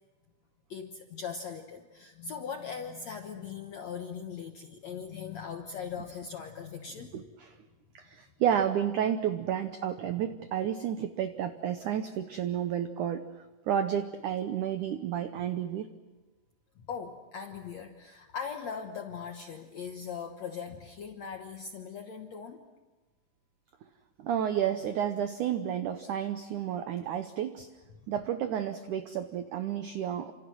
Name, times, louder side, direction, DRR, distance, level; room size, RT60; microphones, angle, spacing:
voice 1, 0.7-7.2 16.8-22.7 27.9-28.0, left 6 dB, 70° left, 4 dB, 1.6 m, -40 dB
voice 2, 7.1-7.5 7.9-13.3 13.7-15.9 24.2-27.7 28.1-30.3, right 9 dB, 85° right, 9 dB, 1.7 m, -31 dB
28.5 x 27.0 x 6.3 m, 1.2 s
omnidirectional pair, 4.9 m